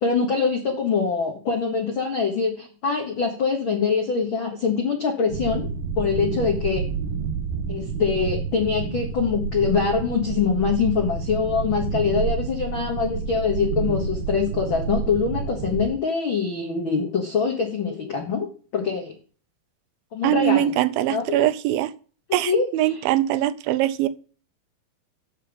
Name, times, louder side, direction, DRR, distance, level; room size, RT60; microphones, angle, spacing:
voice 1, 0.0-5.7 6.0-6.8 7.7-18.5 18.7-19.1 20.1-20.7 21.1-21.4 22.4-23.0, left 5 dB, 80° left, 1.1 m, -24 dB
sound 1, 5.3-15.9, right 5 dB, 65° right, 3.3 m, -29 dB
voice 2, 20.2-21.9 22.3-24.1, right 13 dB, 80° right, 2.3 m, -22 dB
7.6 x 6.9 x 5.1 m
omnidirectional pair, 4.3 m